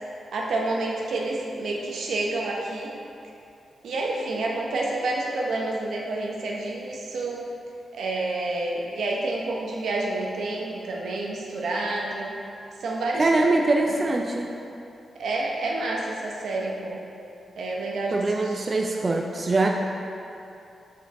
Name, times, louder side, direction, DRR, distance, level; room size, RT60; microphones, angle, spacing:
voice 1, 0.3-2.9 3.8-7.5 7.9-12.4 12.8-13.3 13.9-14.0 15.2-17.0 17.6-18.7, right 2 dB, 80° right, -2 dB, 0.8 m, -29 dB
voice 2, 13.2-14.5 18.1-19.7, right 2 dB, 30° right, 1 dB, 0.3 m, -23 dB
5.9 x 4.6 x 3.6 m, 2.7 s
wide cardioid pair, 160°, 0 cm